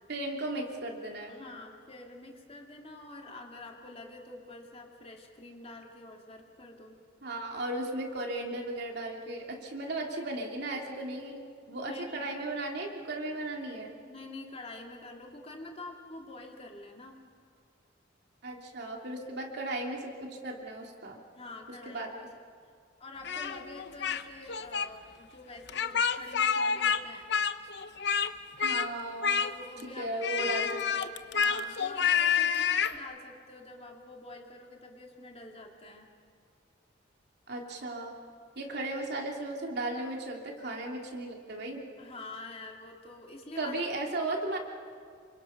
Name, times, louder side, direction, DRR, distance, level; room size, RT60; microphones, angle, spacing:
voice 1, 0.1-1.3 7.2-13.9 18.4-21.2 21.8-22.1 28.6-29.3 30.0-31.1 37.5-38.2 38.5-41.8 43.6-44.6, right 2 dB, 60° right, 1 dB, 3.1 m, -36 dB
voice 2, 1.3-7.0 11.8-12.3 14.0-17.2 21.3-22.1 23.0-27.4 29.4-30.1 31.3-36.1 42.0-43.7, left 2 dB, 35° left, 1 dB, 2.5 m, -46 dB
Speech, 23.2-24.2 24.5-24.9 25.7-27.0 27.3-28.3 28.6-28.9 29.2-29.8 30.2-33.0, left 7 dB, 65° left, 0.8 m, -28 dB
28.0 x 25.5 x 5.9 m, 2.1 s
head